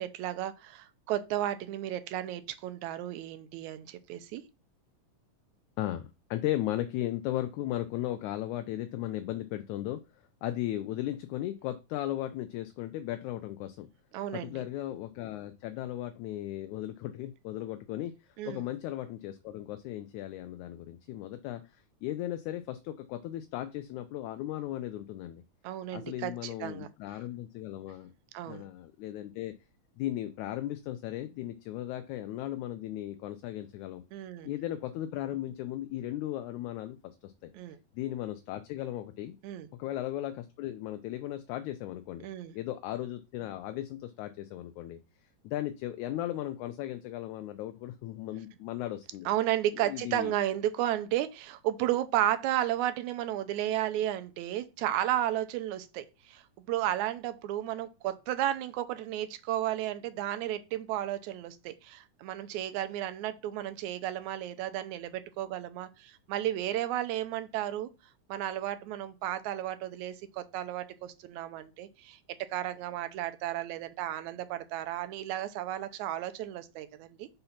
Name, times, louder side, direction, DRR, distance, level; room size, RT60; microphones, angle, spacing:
voice 1, 0.0-4.4 14.1-14.6 18.4-18.6 25.6-26.9 28.3-28.6 34.1-34.5 37.5-37.8 39.4-39.7 42.2-42.6 49.3-67.9 68.3-72.2 72.5-77.3, right 12 dB, 75° right, 1.9 m, -33 dB
voice 2, 5.8-10.0 10.4-13.9 14.3-18.1 18.5-25.4 25.9-28.1 28.5-29.5 30.0-34.0 34.4-37.0 37.2-37.5 38.0-39.4 39.8-42.3 42.5-45.0 45.4-49.3 49.9-50.3, left 13 dB, 80° left, 1.9 m, -36 dB
5.7 x 3.9 x 5.7 m
omnidirectional pair, 3.5 m